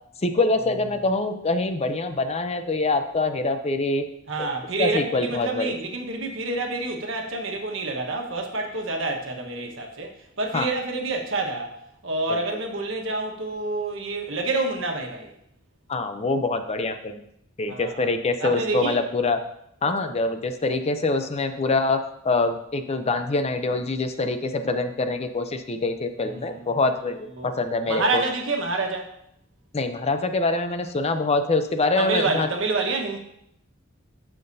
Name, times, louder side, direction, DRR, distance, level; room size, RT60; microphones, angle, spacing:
voice 1, 0.2-4.0 4.8-5.7 10.5-10.7 12.3-12.4 15.9-17.2 17.6-19.4 19.8-22.0 22.2-28.2 29.7-32.5, left 3 dB, 30° left, 8 dB, 0.5 m, -25 dB
voice 2, 4.3-11.8 12.0-15.3 17.7-18.1 18.4-19.0 26.3-26.7 27.4-27.5 27.9-29.1 32.0-33.2, right 3 dB, 75° right, 2 dB, 1.3 m, -28 dB
13.5 x 5.8 x 2.7 m, 0.76 s
head